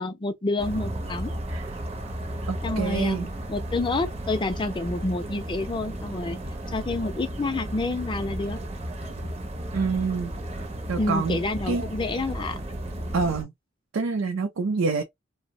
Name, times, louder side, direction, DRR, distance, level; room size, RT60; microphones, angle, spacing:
voice 1, 0.0-1.3 2.6-3.2 3.5-6.4 6.7-8.6 11.0-12.6, left 2 dB, 25° left, 0.4 m, -28 dB
sound 1, 0.6-13.4, right 1 dB, 30° right, 0.6 m, -34 dB
voice 2, 2.5-3.3 9.7-10.3 10.9-11.4 11.7-11.8 13.1-13.5 13.9-15.0, right 4 dB, 80° right, 0.5 m, -26 dB
2.6 x 2.1 x 2.5 m
head